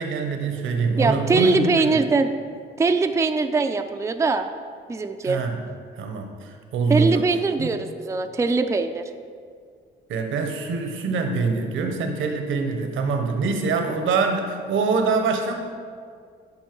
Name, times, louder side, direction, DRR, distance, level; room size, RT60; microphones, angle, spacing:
voice 1, 0.0-2.0 5.2-5.6 5.9-7.2 7.6-7.7 10.1-15.5, right 4 dB, 75° right, 5 dB, 1.0 m, -24 dB
voice 2, 1.0-2.3 2.8-4.5 4.9-5.4 6.9-9.1, right 3 dB, 15° right, 7 dB, 0.4 m, -22 dB
11.0 x 5.5 x 4.6 m, 2.1 s
cardioid pair, 90°, 20 cm